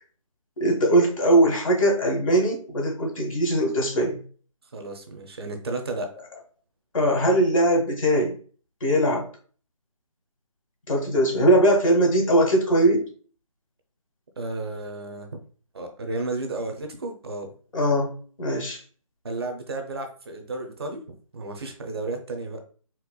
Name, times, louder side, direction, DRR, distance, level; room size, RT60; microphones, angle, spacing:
voice 1, 0.6-4.2 6.9-8.3 8.8-9.2 10.9-13.1 17.7-18.8, right 1 dB, 65° left, 1 dB, 1.3 m, -21 dB
voice 2, 4.7-6.1 14.4-15.4 15.7-17.5 19.2-22.6, right 2 dB, 45° right, 4 dB, 0.6 m, -33 dB
4.4 x 2.1 x 2.2 m, 0.42 s
figure-of-eight pair, 160°, 18 cm